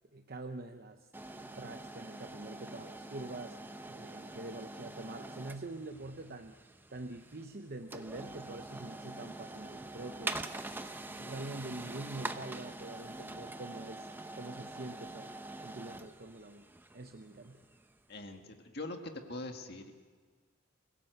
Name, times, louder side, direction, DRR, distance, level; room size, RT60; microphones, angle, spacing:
voice 1, 0.1-3.6 3.9-6.6 6.9-10.5 11.1-14.1 14.3-15.3 15.6-16.7 16.9-17.6, right 2 dB, 50° right, 6 dB, 0.8 m, -45 dB
sound 1, 1.1-18.0, right 2 dB, 10° right, 0.7 m, -45 dB
voice 2, 18.1-19.0 19.3-19.9, left 2 dB, 50° left, 4 dB, 1.9 m, -42 dB
25.0 x 17.0 x 7.9 m, 1.5 s
head